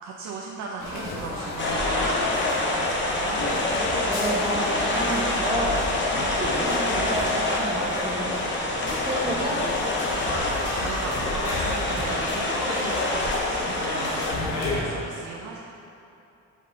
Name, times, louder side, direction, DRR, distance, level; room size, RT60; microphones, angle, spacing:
voice 1, 0.0-3.4 10.2-15.6, right 4 dB, 70° right, -2 dB, 0.6 m, -37 dB
sound 1, 0.8-14.8, left 2 dB, 90° left, 1.2 m, -31 dB
sound 2, 1.6-14.3, left 2 dB, 40° left, 1.0 m, -27 dB
voice 2, 4.1-5.8 6.2-8.3 9.0-9.7, right 1 dB, 15° right, -4 dB, 1.2 m, -30 dB
5.5 x 5.1 x 3.8 m, 2.8 s
cardioid pair, 90°, 30 cm